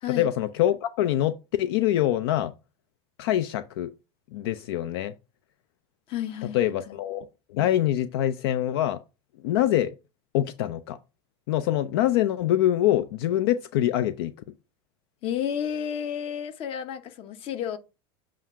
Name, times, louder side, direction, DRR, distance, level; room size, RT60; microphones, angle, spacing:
voice 1, 0.1-2.5 3.2-3.9 4.3-5.1 6.5-9.0 9.4-10.0 10.3-11.0 11.5-14.3, left 12 dB, 75° left, 0.4 m, -24 dB
voice 2, 6.1-7.0 15.2-17.8, left 9 dB, 45° left, 0.9 m, -31 dB
7.4 x 2.5 x 5.5 m
supercardioid pair, 125°, 13 cm